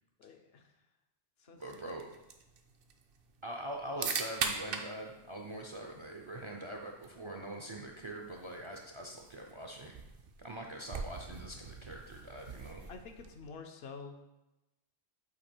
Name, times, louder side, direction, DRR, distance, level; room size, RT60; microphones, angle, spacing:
voice 1, 0.2-0.6 1.4-1.6 12.9-14.2, left 5 dB, 70° left, 5 dB, 0.9 m, -48 dB
voice 2, 1.6-2.1 3.4-10.0 10.4-12.8, right 1 dB, 40° right, 1 dB, 0.5 m, -43 dB
sound 1, 1.6-13.5, right 5 dB, 65° right, 0.8 m, -43 dB
8.0 x 2.9 x 4.4 m, 0.95 s
omnidirectional pair, 1.1 m